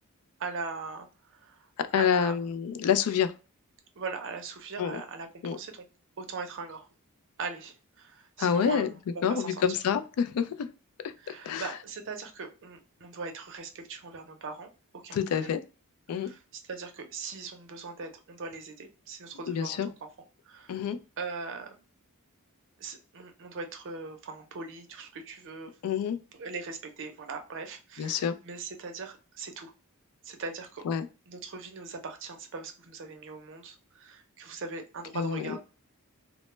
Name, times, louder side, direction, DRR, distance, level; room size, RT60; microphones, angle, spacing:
voice 1, 0.4-2.5 4.0-5.8 6.2-6.9 7.4-9.8 11.2-14.7 15.0-15.5 16.1-19.8 20.4-20.8 21.2-21.7 22.8-25.7 26.4-29.7 30.2-30.9 31.3-35.6, right 4 dB, 55° right, 5 dB, 0.5 m, -40 dB
voice 2, 1.9-3.3 4.8-5.0 5.4-5.6 8.4-8.9 9.2-10.7 11.0-11.7 15.1-15.6 16.1-16.3 19.5-19.9 20.7-21.0 25.8-26.2 28.0-28.3 30.9-31.0 35.2-35.5, left 7 dB, 70° left, 11 dB, 0.3 m, -27 dB
2.1 x 2.0 x 3.0 m, 0.33 s
head